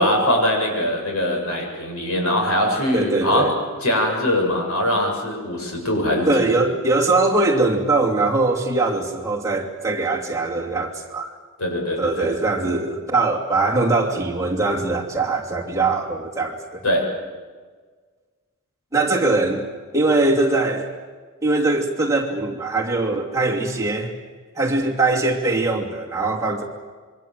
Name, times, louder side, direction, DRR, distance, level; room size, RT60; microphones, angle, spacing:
voice 1, 0.0-3.6 3.8-6.5 11.6-12.3 16.8-17.2, left 1 dB, 85° left, 1 dB, 7.2 m, -22 dB
voice 2, 2.9-3.5 6.3-11.3 12.0-16.8 18.9-20.9 21.4-24.1 24.6-26.6, right 3 dB, 15° right, -2 dB, 2.8 m, -21 dB
26.5 x 24.0 x 7.7 m, 1.5 s
head